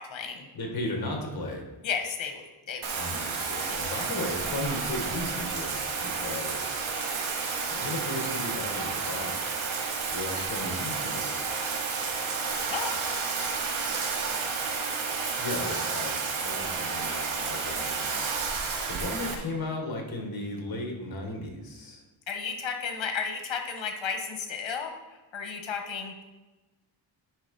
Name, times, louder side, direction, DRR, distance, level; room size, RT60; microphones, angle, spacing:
voice 1, 0.0-0.4 1.8-2.4 2.7-2.9 3.7-4.0 12.7-13.0 22.3-24.9 25.3-26.1, left 6 dB, 70° left, 5 dB, 1.4 m, -33 dB
voice 2, 0.5-1.7 2.9-6.9 7.7-9.4 10.1-11.5 15.4-18.2 18.9-22.0, left 1 dB, 50° left, 2 dB, 1.8 m, -35 dB
Bathtub (filling or washing), 2.8-19.3, right 5 dB, 80° right, 1.3 m, -31 dB
10.0 x 3.8 x 5.5 m, 1.1 s
wide cardioid pair, 140°, 47 cm